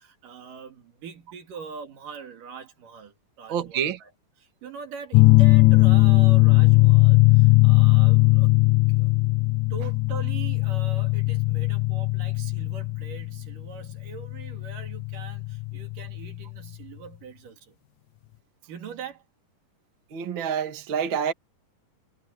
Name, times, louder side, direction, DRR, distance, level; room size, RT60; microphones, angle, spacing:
voice 1, 0.0-4.1 4.4-9.1 9.7-17.8 18.7-19.2, right 6 dB, 80° right, 4.0 m, -42 dB
voice 2, 3.5-4.0 20.1-21.3, right 8 dB, 40° right, 2.3 m, -27 dB
sound 1, 5.1-16.3, left 22 dB, 75° left, 1.8 m, -19 dB
omnidirectional pair, 3.8 m